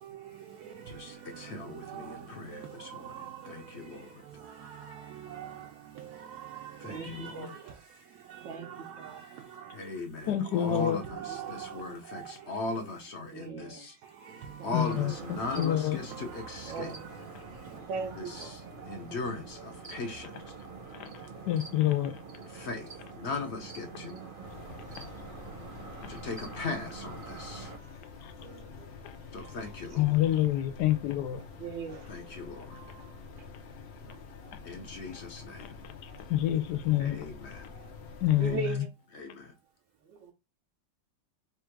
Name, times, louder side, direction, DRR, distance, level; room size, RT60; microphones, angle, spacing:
voice 1, 0.0-9.9 10.7-12.6 14.0-14.9 15.4-15.7 16.1-16.8 17.3-17.9 18.8-19.0 21.2-21.3 27.7-27.9 29.4-29.6 32.7-33.1 34.4-34.5 37.7-37.9, right 9 dB, 70° right, 1.0 m, -46 dB
voice 2, 0.9-4.3 6.8-7.6 9.7-13.9 14.6-16.9 18.2-20.4 22.4-24.2 26.1-27.7 29.3-30.3 32.1-32.8 34.6-35.9 36.9-37.7 38.4-38.6 39.1-39.5, left 3 dB, 55° left, 0.7 m, -39 dB
voice 3, 6.9-7.8 8.4-9.2 10.2-10.9 11.2-11.8 13.2-13.9 14.6-15.6 16.6-17.3 17.8-18.8 23.9-25.3 25.7-26.2 27.9-28.1 28.4-29.6 29.9-30.0 31.6-32.5 33.2-33.5 34.1-34.2 35.5-35.6 38.4-38.9 40.0-40.3, right 4 dB, 85° right, 1.4 m, -42 dB
voice 4, 10.3-11.0 14.7-15.1 15.6-16.0 20.9-21.1 21.5-22.2 25.0-25.1 26.0-26.2 28.2-28.3 29.0-29.2 30.0-31.4 35.6-35.7 36.0-37.3 38.2-38.8, left 12 dB, 70° left, 1.1 m, -27 dB
sound 1, 14.7-27.8, right 4 dB, 40° right, 0.8 m, -45 dB
sound 2, 24.4-38.6, left 4 dB, 85° left, 0.5 m, -47 dB
3.5 x 2.4 x 4.5 m
omnidirectional pair, 2.0 m